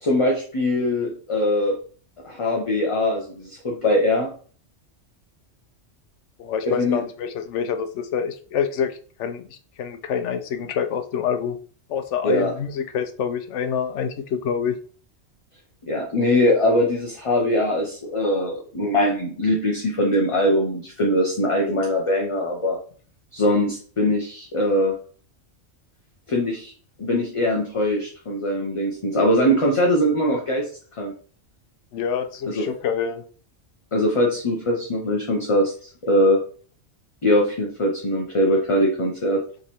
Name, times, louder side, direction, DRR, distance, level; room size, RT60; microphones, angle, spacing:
voice 1, 0.0-1.7 2.2-4.3 6.6-7.0 12.2-12.5 15.9-22.8 23.3-25.0 26.3-26.7 27.0-30.7 31.0-31.1 32.5-32.8 33.9-36.4 37.2-39.4, left 1 dB, 35° left, -1 dB, 0.6 m, -22 dB
voice 2, 6.4-11.6 11.9-14.8 31.9-33.2, left 7 dB, 80° left, 8 dB, 0.9 m, -27 dB
3.6 x 3.1 x 4.2 m, 0.43 s
omnidirectional pair, 1.2 m